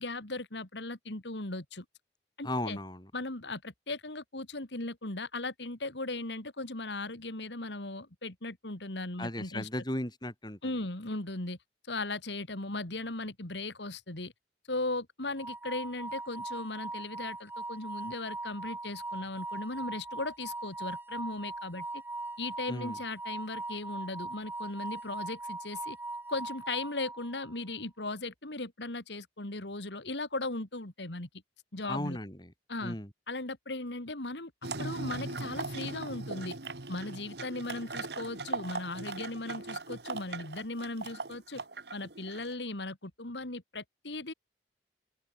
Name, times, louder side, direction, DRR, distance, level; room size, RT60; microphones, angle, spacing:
voice 1, 0.0-1.8 2.4-2.8 3.1-9.7 10.6-11.6 11.9-14.3 14.7-22.0 22.4-26.0 26.3-31.3 31.7-32.2 32.7-32.9 33.3-34.5 34.8-36.5 36.9-41.6 41.9-44.3, left 2 dB, 85° left, 2.9 m, -37 dB
voice 2, 2.4-3.1 9.2-10.9 22.7-23.0 31.9-32.5 32.8-33.1, left 1 dB, 25° left, 7.2 m, -36 dB
sound 1, 15.4-27.6, right 2 dB, 10° right, 3.8 m, -40 dB
sound 2, 34.6-42.5, right 3 dB, 70° right, 2.4 m, -39 dB
open air
head